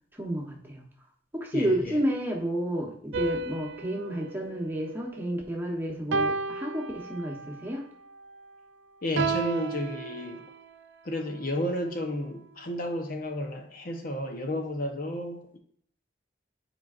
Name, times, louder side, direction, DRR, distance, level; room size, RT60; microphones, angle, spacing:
voice 1, 0.2-0.8 1.3-7.9, right 1 dB, 10° right, 0 dB, 1.0 m, -31 dB
voice 2, 1.5-2.0 9.0-10.4 11.0-15.6, left 1 dB, 50° left, 4 dB, 0.8 m, -32 dB
sound 1, 3.1-5.5 6.1-7.6 9.2-10.8, right 4 dB, 85° right, 0.4 m, -33 dB
10.0 x 4.5 x 2.5 m, 0.63 s
head